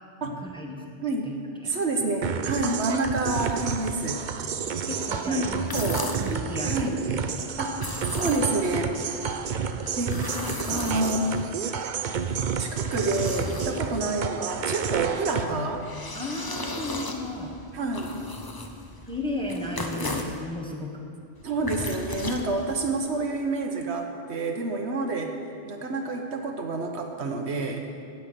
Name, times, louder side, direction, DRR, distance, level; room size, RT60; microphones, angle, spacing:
voice 1, 0.4-0.8 1.2-1.4 1.6-1.7 4.9-6.9 7.2-7.4 13.7-13.9 16.1-17.6 19.1-21.0, left 1 dB, 5° left, -1 dB, 1.2 m, -34 dB
voice 2, 1.7-4.2 5.3-6.1 6.6-7.0 7.6-9.0 9.9-10.3 10.6-11.3 12.6-15.9 17.7-18.2 21.4-25.4 25.7-27.8, right 3 dB, 75° right, 3 dB, 1.3 m, -28 dB
sound 1, 2.2-15.4, right 6 dB, 50° right, 0.7 m, -30 dB
sound 2, 5.5-6.4 7.7-8.7 9.8-11.5 12.3-14.1 15.5-20.4 21.4-23.0, left 2 dB, 25° left, 0.7 m, -36 dB
16.5 x 5.8 x 6.8 m, 2.4 s
omnidirectional pair, 1.1 m